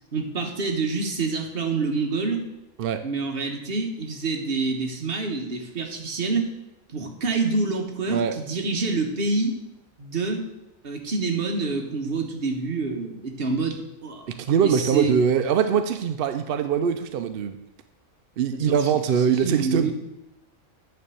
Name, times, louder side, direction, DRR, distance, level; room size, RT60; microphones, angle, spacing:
voice 1, 0.1-2.4 3.0-6.5 6.9-9.5 10.0-10.4 10.8-14.3 14.6-15.1 18.5-18.9 19.4-19.9, right 3 dB, 45° right, 3 dB, 1.3 m, -27 dB
voice 2, 14.3-17.6 18.4-19.9, right 7 dB, 65° right, 8 dB, 0.5 m, -22 dB
9.6 x 3.4 x 6.9 m, 0.92 s
omnidirectional pair, 1.4 m